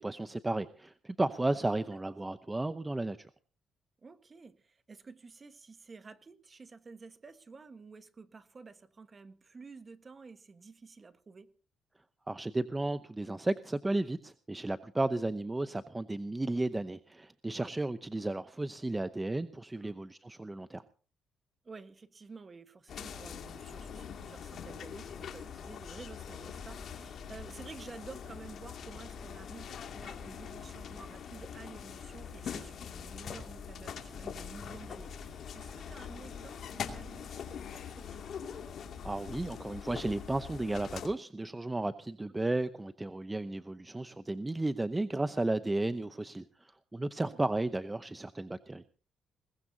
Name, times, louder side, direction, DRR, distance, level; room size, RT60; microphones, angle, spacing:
voice 1, 0.0-3.3 12.3-20.8 39.0-48.8, right 2 dB, 15° right, 0.8 m, -34 dB
voice 2, 4.0-11.5 15.1-15.3 17.5-17.7 19.8-20.0 21.6-38.2 45.6-45.7 47.2-47.5, right 4 dB, 35° right, 1.4 m, -51 dB
sound 1, 22.9-41.1, left 7 dB, 60° left, 2.5 m, -43 dB
21.0 x 19.5 x 2.8 m
cardioid pair, 90°, 0 cm